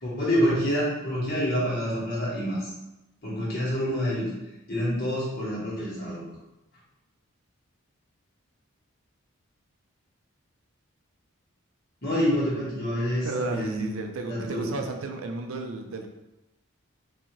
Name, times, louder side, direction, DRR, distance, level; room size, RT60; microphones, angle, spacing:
voice 1, 0.0-2.6 3.2-4.3 4.7-6.2 12.0-13.9 14.3-14.7, equal, 45° left, -7 dB, 1.3 m, -27 dB
voice 2, 13.2-16.1, right 3 dB, 75° right, 4 dB, 0.4 m, -33 dB
3.7 x 2.7 x 3.0 m, 0.95 s
head